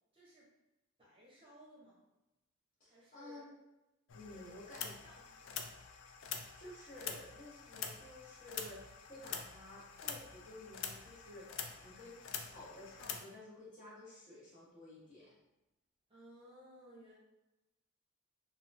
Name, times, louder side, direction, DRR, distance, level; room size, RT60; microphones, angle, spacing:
voice 1, 0.1-0.5 1.0-2.0 2.9-3.5 4.3-4.7 5.0-5.8 16.1-17.1, equal, 25° right, -6 dB, 0.7 m, -59 dB
voice 2, 2.8-3.5 4.1-4.9 6.6-11.5 11.8-15.3, left 1 dB, 40° left, -7 dB, 0.9 m, -53 dB
sound 1, 4.1-13.2, left 7 dB, 65° left, 0.3 m, -46 dB
2.8 x 2.2 x 2.5 m, 0.95 s
head